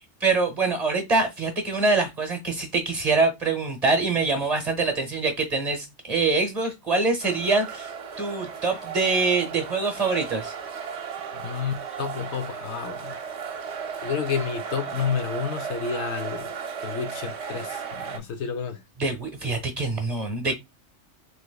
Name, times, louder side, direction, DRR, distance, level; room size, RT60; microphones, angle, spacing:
voice 1, 0.2-10.5 19.0-20.5, right 3 dB, 35° right, 0.9 m, -24 dB
sound 1, 7.2-18.2, right 6 dB, 70° right, 0.9 m, -35 dB
voice 2, 11.3-13.1 14.0-18.8, left 7 dB, 75° left, 0.9 m, -30 dB
3.3 x 3.1 x 2.2 m
omnidirectional pair, 1.2 m